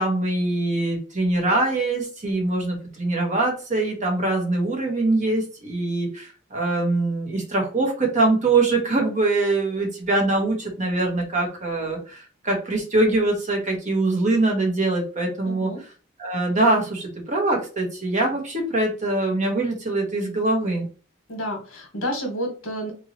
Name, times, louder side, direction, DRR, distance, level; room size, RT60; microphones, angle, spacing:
voice 1, 0.0-15.7 16.2-20.9, right 2 dB, 35° right, 0 dB, 1.1 m, -23 dB
voice 2, 15.4-15.8 21.3-22.9, equal, 75° left, 3 dB, 1.4 m, -30 dB
3.6 x 3.0 x 2.8 m, 0.36 s
head